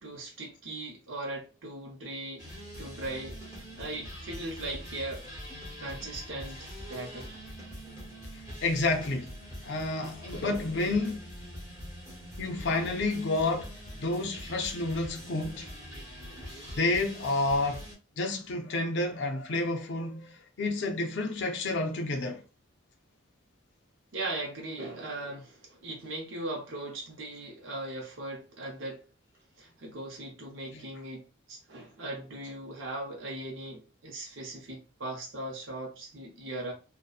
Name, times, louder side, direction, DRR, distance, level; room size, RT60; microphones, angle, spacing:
voice 1, 0.0-5.2 5.8-7.3 9.6-9.8 24.1-29.1 29.6-36.7, right 2 dB, 75° right, 0.7 m, -39 dB
sound 1, 2.4-18.0, equal, 15° right, 0.9 m, -44 dB
voice 2, 8.6-9.3 9.6-11.3 12.4-13.7 14.0-15.7 16.8-17.8 18.2-22.4 30.7-30.8, left 2 dB, 60° left, 0.5 m, -30 dB
2.6 x 2.1 x 2.3 m
head